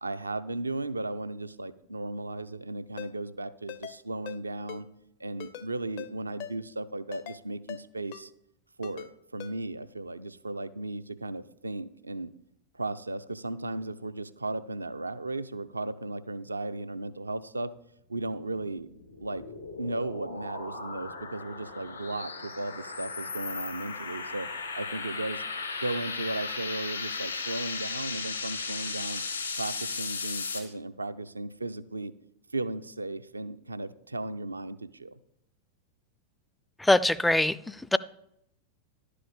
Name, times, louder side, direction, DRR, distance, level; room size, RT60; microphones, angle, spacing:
voice 1, 0.0-4.9 5.2-8.3 8.8-12.3 12.7-17.7 18.1-18.9 19.2-19.5 19.8-25.4 25.8-29.2 29.5-32.1 32.5-35.2, right 2 dB, 80° right, 13 dB, 0.4 m, -35 dB
Ringtone, 3.0-3.1 3.7-4.0 4.3-4.4 4.7-4.8 5.4-5.7 6.0-6.1 6.4-6.5 7.1-7.4 7.7-7.8 8.1-8.2 8.8-9.1 9.4-9.5, left 11 dB, 50° left, 0.6 m, -41 dB
sound 1, 18.6-30.6, left 4 dB, 75° left, 2.5 m, -36 dB
voice 2, 36.8-38.0, left 1 dB, 5° left, 17 dB, 0.3 m, -23 dB
11.0 x 5.0 x 7.0 m, 0.78 s
figure-of-eight pair, 90°, 0 cm